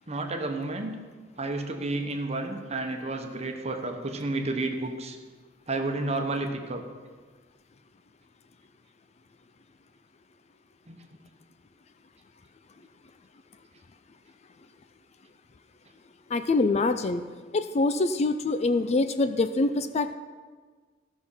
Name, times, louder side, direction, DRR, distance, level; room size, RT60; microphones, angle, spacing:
voice 1, 0.1-0.9 1.4-5.2 5.7-6.8 10.9-11.0, right 2 dB, 35° right, 4 dB, 1.0 m, -31 dB
voice 2, 16.3-17.2 17.5-20.1, left 3 dB, 35° left, 10 dB, 0.4 m, -25 dB
14.5 x 6.0 x 5.6 m, 1.5 s
head